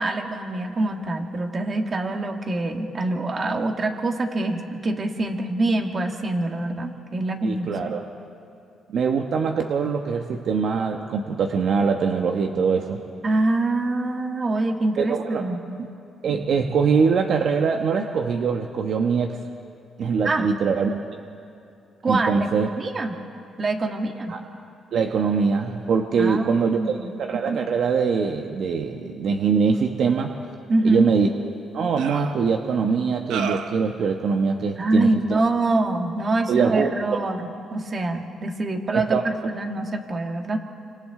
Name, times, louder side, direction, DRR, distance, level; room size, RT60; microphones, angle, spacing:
voice 1, 0.0-7.7 13.2-15.8 20.2-20.5 22.0-23.1 23.6-24.4 26.2-27.1 30.7-31.1 34.8-40.6, right 2 dB, 40° right, 3 dB, 2.1 m, -25 dB
voice 2, 7.4-8.0 8.9-13.0 15.0-15.5 16.2-19.4 20.0-21.0 22.1-22.7 24.3-24.4 24.9-26.8 27.2-30.3 30.8-31.3 31.7-35.4 36.5-36.9 38.9-39.2, right 5 dB, 65° right, 3 dB, 1.2 m, -23 dB
sound 1, 31.0-31.1 32.0-32.3 33.3-33.8, right 7 dB, 85° right, 1.1 m, -30 dB
28.0 x 25.5 x 3.8 m, 2.5 s
cardioid pair, 90°, 0 cm